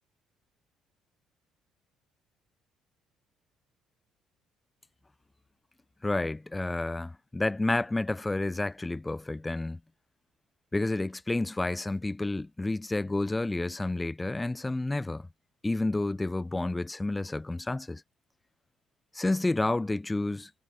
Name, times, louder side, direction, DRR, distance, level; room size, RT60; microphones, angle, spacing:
voice 1, 6.0-9.8 10.7-15.3 15.6-18.0 19.1-20.5, left 2 dB, 15° left, 0.5 m, -30 dB
hypercardioid pair, 50°, 0 cm